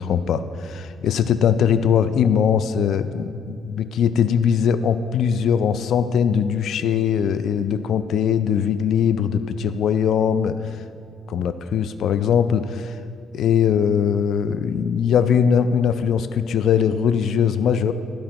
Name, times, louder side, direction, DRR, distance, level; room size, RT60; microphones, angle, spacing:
voice 1, 0.0-10.6 11.3-13.0 13.3-17.9, left 7 dB, 70° left, 12 dB, 0.3 m, -20 dB
13.5 x 5.1 x 3.0 m, 2.4 s
cardioid pair, 90°, 0 cm